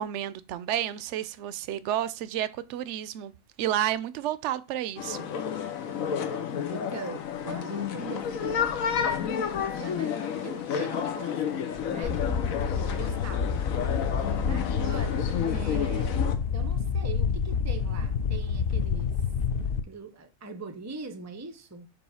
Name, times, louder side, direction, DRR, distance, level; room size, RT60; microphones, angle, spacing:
voice 1, 0.0-3.3 3.6-5.3, right 11 dB, 65° right, 0.8 m, -31 dB
sound 1, 5.0-16.3, left 8 dB, 80° left, 1.3 m, -31 dB
voice 2, 6.7-12.2 12.7-13.6 14.5-19.1 19.5-21.9, right 3 dB, 25° right, 0.3 m, -42 dB
sound 2, 12.0-19.8, left 6 dB, 60° left, 0.6 m, -28 dB
5.4 x 4.6 x 5.6 m
omnidirectional pair, 1.4 m